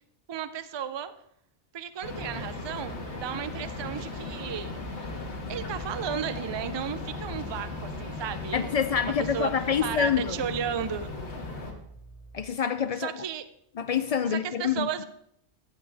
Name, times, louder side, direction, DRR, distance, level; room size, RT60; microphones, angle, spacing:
voice 1, 0.3-1.1 1.7-4.8 5.5-8.8 9.0-9.5 9.8-11.1 13.0-13.5 14.3-15.0, right 8 dB, 45° right, 0.3 m, -34 dB
sound 1, 2.0-11.7, left 3 dB, 80° left, 1.8 m, -37 dB
sound 2, 4.2-12.4, right 3 dB, 30° left, 2.7 m, -50 dB
voice 2, 8.5-10.4 12.3-13.1 13.8-14.9, left 7 dB, 60° left, 0.4 m, -26 dB
15.5 x 7.3 x 3.4 m
omnidirectional pair, 1.1 m